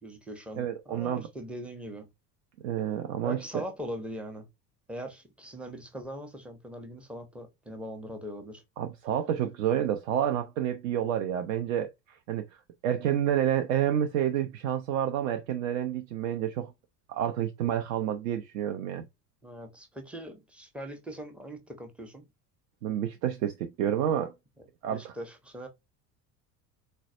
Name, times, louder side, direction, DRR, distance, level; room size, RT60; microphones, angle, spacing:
voice 1, 0.0-2.1 3.2-4.5 4.9-8.6 19.4-22.3 24.6-25.7, equal, ahead, 0.5 m, -41 dB
voice 2, 0.6-1.2 2.6-3.6 8.8-12.5 12.8-16.7 17.1-19.1 22.8-24.3 24.8-25.1, right 10 dB, 55° right, 0.5 m, -29 dB
3.9 x 2.1 x 2.3 m
figure-of-eight pair, 65°, 49 cm